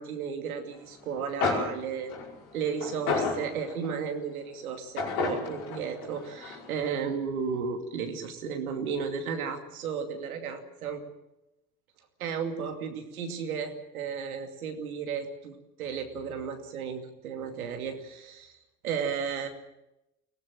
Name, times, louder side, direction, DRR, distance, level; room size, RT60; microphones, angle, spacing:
voice 1, 0.0-2.2 2.5-11.0 12.2-15.5 15.8-18.5 18.8-19.5, right 6 dB, 80° right, 5 dB, 2.7 m, -34 dB
sound 1, 1.1-1.2 1.4-4.0 5.0-6.9, left 4 dB, 75° left, 5.7 m, -32 dB
23.0 x 18.0 x 7.5 m, 0.91 s
hypercardioid pair, 60°, 43 cm